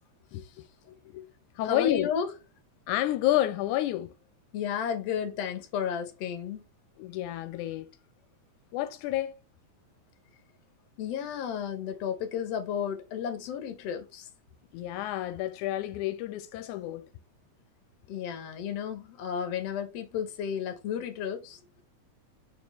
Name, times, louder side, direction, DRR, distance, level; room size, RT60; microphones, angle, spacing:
voice 1, 0.9-1.3 1.6-2.1 2.9-4.2 7.0-7.9 8.7-9.3 14.7-17.1, left 13 dB, 85° left, 2.0 m, -30 dB
voice 2, 1.7-2.3 4.5-6.6 11.0-14.3 18.1-21.8, left 8 dB, 65° left, 2.0 m, -33 dB
6.6 x 4.3 x 3.4 m
omnidirectional pair, 3.5 m